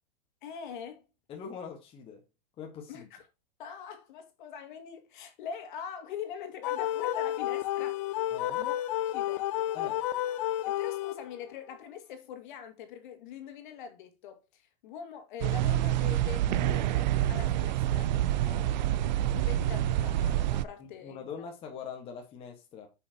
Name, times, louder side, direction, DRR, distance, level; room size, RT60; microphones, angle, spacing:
voice 1, 0.4-1.0 2.9-3.2 3.6-8.0 8.6-8.8 9.1-9.5 10.6-18.2 19.3-21.2, left 7 dB, 55° left, 2.1 m, -43 dB
voice 2, 1.3-2.2 2.6-3.1 8.3-8.6 9.7-10.0 18.4-18.7 19.2-19.3 20.8-22.9, left 6 dB, 20° left, 1.3 m, -43 dB
sound 1, 6.6-11.5, left 13 dB, 35° left, 0.4 m, -31 dB
sound 2, 15.4-20.7, right 12 dB, 50° right, 0.5 m, -27 dB
8.7 x 5.8 x 2.8 m
supercardioid pair, 165°, 30 cm